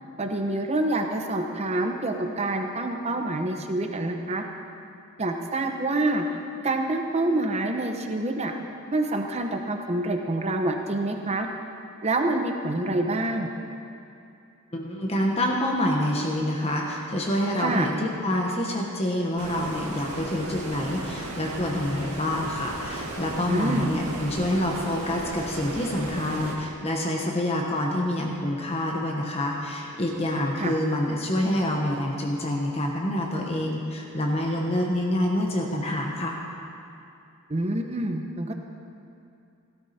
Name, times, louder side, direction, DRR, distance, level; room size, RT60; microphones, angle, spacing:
voice 1, 0.2-4.4 5.2-6.2 6.6-8.5 8.9-11.5 12.0-13.5 17.6-17.9 23.5-23.9 30.3-30.7 37.5-38.5, right 2 dB, 30° right, 4 dB, 0.8 m, -27 dB
voice 2, 14.7-36.4, left 1 dB, 30° left, 0 dB, 1.1 m, -27 dB
Stream, 19.4-26.6, right 2 dB, 90° right, 1.7 m, -36 dB
17.0 x 12.5 x 4.3 m, 2.6 s
head